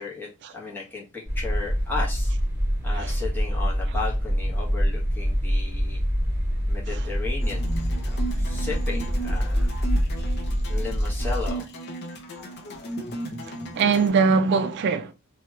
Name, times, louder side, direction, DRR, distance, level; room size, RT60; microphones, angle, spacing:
voice 1, 0.0-2.3 2.8-6.0 6.7-7.7 8.0-9.7 10.7-11.7, left 4 dB, 10° left, 1.0 m, -35 dB
sound 1, 1.3-11.5, equal, 15° right, 1.3 m, -25 dB
sound 2, 7.4-14.1, right 2 dB, 55° left, 0.6 m, -36 dB
voice 2, 13.4-15.1, right 5 dB, 55° right, 0.3 m, -21 dB
2.9 x 2.3 x 3.0 m
head